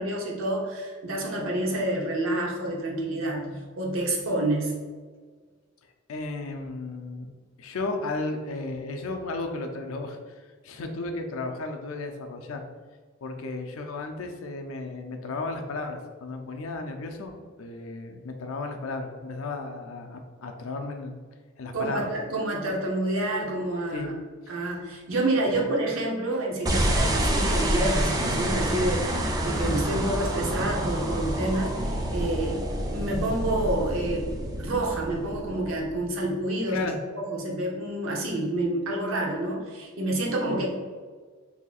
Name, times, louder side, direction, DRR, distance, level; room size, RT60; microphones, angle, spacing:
voice 1, 0.0-4.7 21.7-24.1 24.5-32.6 32.9-34.3 34.6-40.7, right 1 dB, 80° right, -1 dB, 0.7 m, -28 dB
voice 2, 6.1-7.3 7.6-12.6 13.2-21.2 21.6-22.1 23.9-24.1 25.5-25.6 36.7-37.0 40.5-40.6, left 3 dB, 80° left, 4 dB, 0.5 m, -34 dB
sound 1, 26.7-36.0, right 1 dB, 20° right, 0.4 m, -27 dB
4.2 x 2.7 x 2.3 m, 1.5 s
head